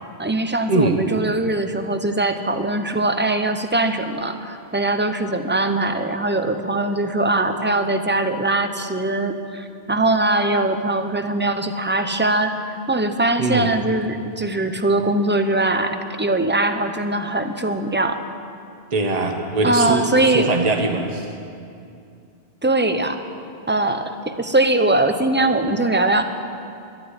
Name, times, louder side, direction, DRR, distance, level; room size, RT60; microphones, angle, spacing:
voice 1, 0.2-18.2 19.6-20.5 22.6-23.2 23.7-26.2, right 2 dB, 10° right, 7 dB, 0.7 m, -21 dB
voice 2, 13.4-13.7 18.9-21.3, right 2 dB, 40° right, 3 dB, 1.3 m, -22 dB
12.0 x 12.0 x 9.6 m, 2.5 s
omnidirectional pair, 1.0 m